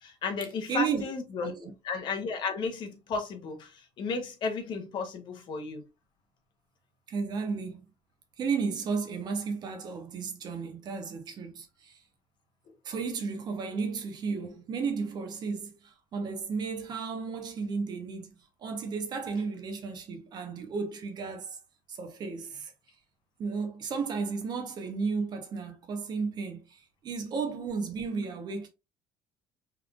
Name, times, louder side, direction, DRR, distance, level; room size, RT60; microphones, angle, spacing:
voice 1, 0.0-1.5 1.8-5.8, left 4 dB, 45° left, 1.0 m, -33 dB
voice 2, 0.7-1.1 1.4-1.7 7.1-7.9 8.4-12.0 12.8-18.3 18.6-21.6 21.9-22.7 23.4-28.7, right 5 dB, 40° right, 0.9 m, -33 dB
3.6 x 3.3 x 2.4 m
cardioid pair, 140°, 11 cm